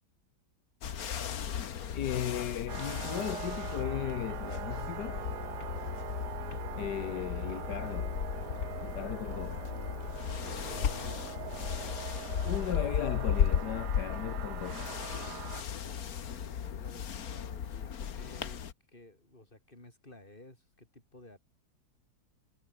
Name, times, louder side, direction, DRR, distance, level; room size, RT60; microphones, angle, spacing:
sound 1, 0.8-18.7, left 8 dB, 60° left, 1.7 m, -35 dB
voice 1, 1.9-5.2 6.8-8.1 8.8-9.7 12.4-14.9, left 10 dB, 80° left, 1.6 m, -37 dB
sound 2, 2.7-15.6, right 15 dB, 85° right, 1.2 m, -43 dB
voice 2, 10.6-11.2 15.8-18.6 18.9-21.4, left 2 dB, 30° left, 5.5 m, -54 dB
omnidirectional pair, 1.8 m